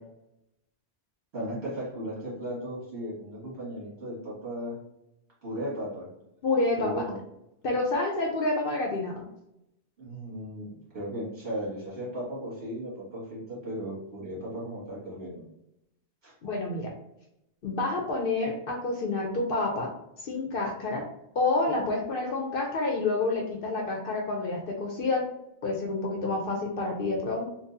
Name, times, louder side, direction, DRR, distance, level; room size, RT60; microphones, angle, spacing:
voice 1, 1.3-4.8 5.4-6.1 6.8-7.2 10.0-15.4 16.2-16.3, equal, 65° right, -7 dB, 1.9 m, -36 dB
voice 2, 6.4-7.0 7.6-9.3 16.4-16.9 17.6-19.9 20.2-21.0 21.3-25.2 25.6-27.5, left 2 dB, 60° left, 1 dB, 0.8 m, -28 dB
3.9 x 2.3 x 2.6 m, 0.83 s
omnidirectional pair, 1.2 m